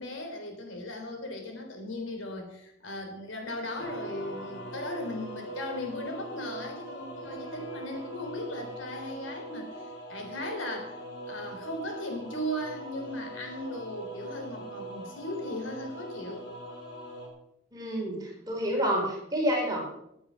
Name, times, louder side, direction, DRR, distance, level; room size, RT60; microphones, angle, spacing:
voice 1, 0.0-11.0 11.3-16.4, left 1 dB, 85° left, 3 dB, 3.6 m, -37 dB
sound 1, 3.8-17.3, right 1 dB, 60° left, 3.3 m, -42 dB
voice 2, 17.7-19.8, equal, 20° right, -1 dB, 4.2 m, -29 dB
14.0 x 8.6 x 6.4 m, 0.79 s
head